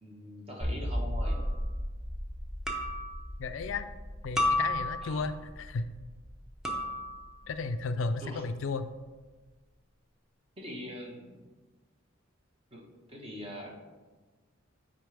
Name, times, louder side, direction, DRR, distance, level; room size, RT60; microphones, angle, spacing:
voice 1, 0.0-1.4 5.0-5.2 8.2-8.4 10.6-11.4 12.7-12.8 13.1-13.8, equal, 30° right, -2 dB, 1.3 m, -42 dB
sound 1, 0.6-7.8, equal, 80° right, 2.2 m, -37 dB
sound 2, 1.2-1.5 2.7-3.2 4.4-5.2 6.6-7.3, left 2 dB, 5° right, 0.7 m, -31 dB
voice 2, 3.4-3.9 4.2-5.9 7.5-8.9, left 4 dB, 70° left, 10 dB, 0.4 m, -33 dB
9.5 x 4.2 x 3.4 m, 1.3 s
head